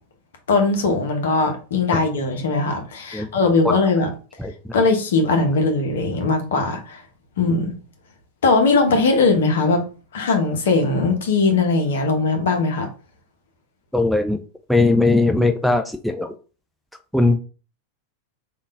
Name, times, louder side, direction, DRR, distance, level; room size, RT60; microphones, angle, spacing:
voice 1, 0.5-4.1 4.7-7.0 7.4-7.7 8.4-9.8 10.1-12.9, left 3 dB, 60° left, 0.9 m, -19 dB
voice 2, 13.9-14.4 14.7-16.3 17.1-17.4, left 2 dB, ahead, 0.4 m, -19 dB
3.6 x 2.5 x 3.5 m
figure-of-eight pair, 90°, 0 cm